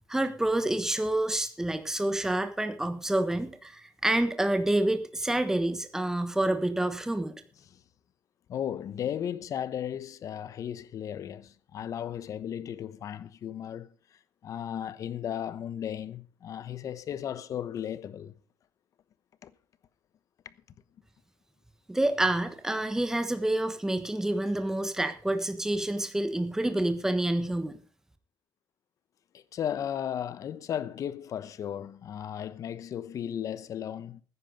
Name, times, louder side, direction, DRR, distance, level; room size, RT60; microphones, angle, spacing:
voice 1, 0.1-7.3 21.9-27.8, right 1 dB, 10° right, 1.4 m, -28 dB
voice 2, 8.5-13.9 14.4-18.3 19.4-19.5 20.4-20.5 29.3-34.2, left 9 dB, 60° left, 1.1 m, -35 dB
14.5 x 10.0 x 5.2 m
cardioid pair, 90°, 6 cm